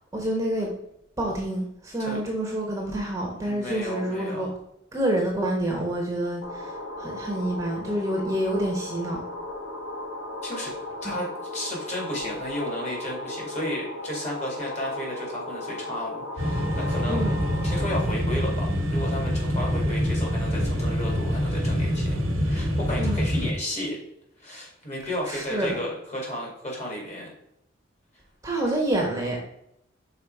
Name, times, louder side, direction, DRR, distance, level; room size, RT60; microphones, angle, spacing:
voice 1, 0.1-0.7 1.2-4.5 4.9-6.7 7.0-9.2 11.0-11.2 17.1-17.4 23.0-23.2 25.3-25.7 28.4-29.6, right 1 dB, 15° right, -1 dB, 1.1 m, -27 dB
voice 2, 3.4-4.6 10.4-10.7 11.0-17.3 17.6-24.0 24.4-27.3, left 1 dB, 35° left, -2 dB, 2.3 m, -33 dB
sound 1, 6.4-17.9, left 1 dB, 75° left, 1.3 m, -36 dB
sound 2, 16.4-23.5, equal, 85° right, 1.2 m, -25 dB
5.6 x 4.3 x 4.7 m, 0.78 s
head